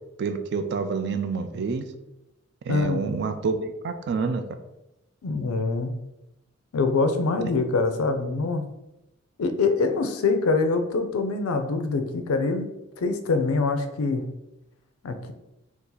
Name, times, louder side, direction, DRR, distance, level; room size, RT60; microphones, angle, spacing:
voice 1, 0.2-1.9 2.6-4.5, right 5 dB, 50° right, 8 dB, 0.3 m, -28 dB
voice 2, 2.7-3.0 5.2-6.0 6.7-8.6 9.4-12.7 13.0-14.3 15.0-15.3, left 3 dB, 90° left, 7 dB, 0.4 m, -24 dB
2.7 x 2.5 x 3.8 m, 0.90 s
head